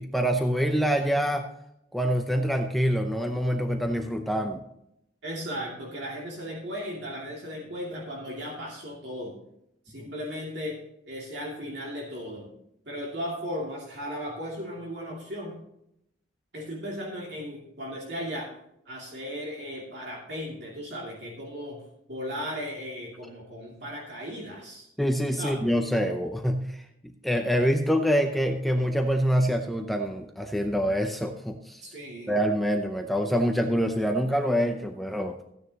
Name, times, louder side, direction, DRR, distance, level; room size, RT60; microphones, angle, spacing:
voice 1, 0.0-1.5 1.9-4.6 25.0-31.9 32.3-35.4, equal, ahead, 4 dB, 0.6 m, -26 dB
voice 2, 5.2-9.3 9.8-10.8 11.1-12.5 12.8-15.6 16.5-18.5 18.9-21.8 22.1-24.9 25.4-25.6 31.8-32.4, equal, 55° right, -4 dB, 2.6 m, -36 dB
14.5 x 9.6 x 2.9 m, 0.79 s
head